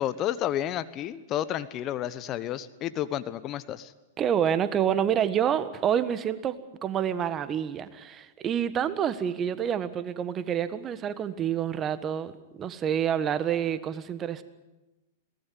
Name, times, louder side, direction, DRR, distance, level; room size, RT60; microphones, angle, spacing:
voice 1, 0.0-3.9, left 11 dB, 35° left, 14 dB, 1.0 m, -31 dB
voice 2, 4.2-6.6 6.8-12.3 12.6-14.4, right 9 dB, 30° right, 12 dB, 1.5 m, -27 dB
22.5 x 18.0 x 9.5 m, 1.1 s
hypercardioid pair, 105°, 0 cm